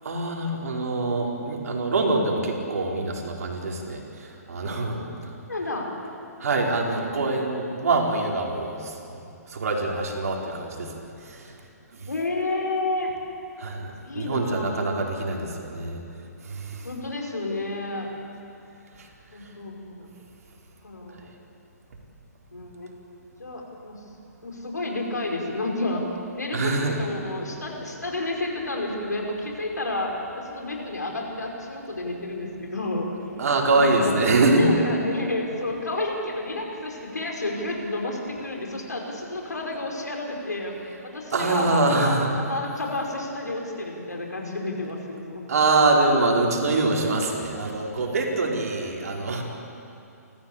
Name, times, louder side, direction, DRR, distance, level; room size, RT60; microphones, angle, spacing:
voice 1, 0.0-5.3 6.4-9.2 9.5-10.9 11.2-11.5 11.9-12.1 13.6-16.0 16.4-16.9 19.0-19.1 19.4-19.5 26.5-27.0 33.4-34.7 41.3-42.3 45.5-49.4, right 3 dB, 65° right, 0 dB, 4.6 m, -24 dB
voice 2, 5.5-5.9 12.1-13.1 14.0-14.9 16.8-18.1 19.3-20.1 20.8-21.3 22.5-22.9 23.4-24.0 24.4-26.0 26.3-26.7 27.0-33.1 33.7-34.1 34.4-40.7 41.0-42.2 42.5-45.5, left 2 dB, 85° left, 1 dB, 5.2 m, -30 dB
29.5 x 15.0 x 8.7 m, 2.7 s
figure-of-eight pair, 130°, 9 cm